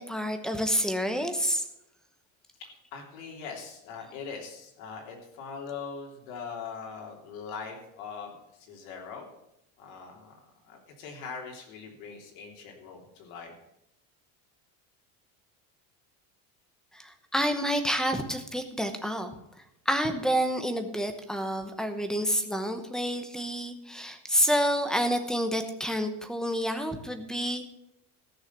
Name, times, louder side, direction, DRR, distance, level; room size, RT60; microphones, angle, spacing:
voice 1, 0.0-1.6 16.9-19.3 19.9-27.8, equal, ahead, 7 dB, 0.9 m, -28 dB
voice 2, 2.6-9.3 9.8-10.4 10.7-13.5, left 5 dB, 85° left, 0 dB, 3.5 m, -41 dB
14.5 x 6.4 x 7.4 m, 0.81 s
cardioid pair, 165°, 40 cm